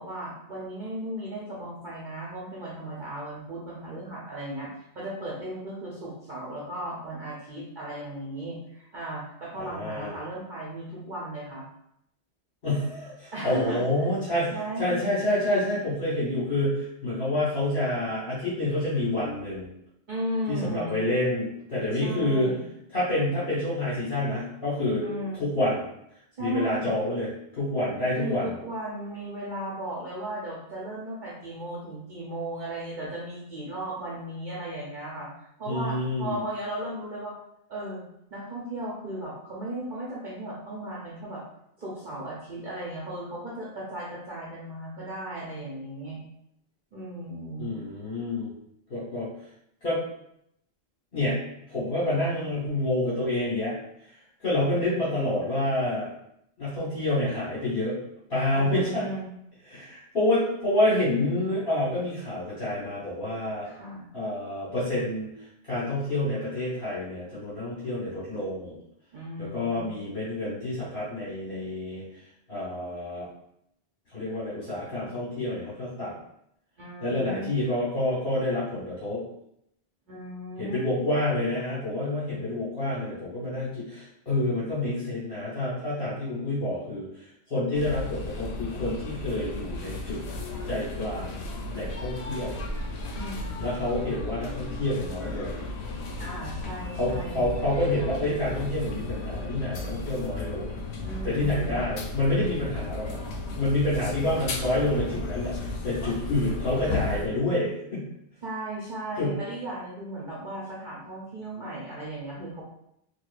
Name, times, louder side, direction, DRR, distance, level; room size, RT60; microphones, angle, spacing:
voice 1, 0.0-4.7 4.9-11.7 13.3-14.1 14.5-15.2 20.1-21.0 21.9-22.6 25.0-25.4 26.4-26.9 28.1-35.3 35.6-37.4 37.7-38.0 38.3-41.4 41.8-46.2 46.9-47.7 58.5-59.3 63.6-64.1 69.1-69.9 76.8-77.5 80.1-80.8 93.1-93.6 96.2-97.5 101.0-101.8 108.4-112.6, right 1 dB, 55° right, -5 dB, 0.8 m, -36 dB
voice 2, 9.7-10.1 12.6-19.7 20.5-22.5 22.9-25.0 25.4-25.8 26.4-28.5 35.6-36.4 47.6-48.5 48.9-49.3 49.8-50.0 51.1-51.4 51.7-53.7 54.4-56.1 56.6-58.0 58.3-59.1 59.7-63.7 64.1-65.3 65.6-68.7 69.4-72.0 72.5-73.2 74.1-76.1 77.0-79.2 80.6-87.0 87.5-90.2 90.6-91.4 91.7-92.5 93.6-95.6 97.0-100.7 101.2-103.2 103.5-108.0 109.2-109.3, left 1 dB, 60° left, -10 dB, 1.3 m, -28 dB
sound 1, 87.7-107.3, left 2 dB, 80° left, 0.9 m, -34 dB
4.4 x 2.2 x 2.4 m, 0.76 s
omnidirectional pair, 1.1 m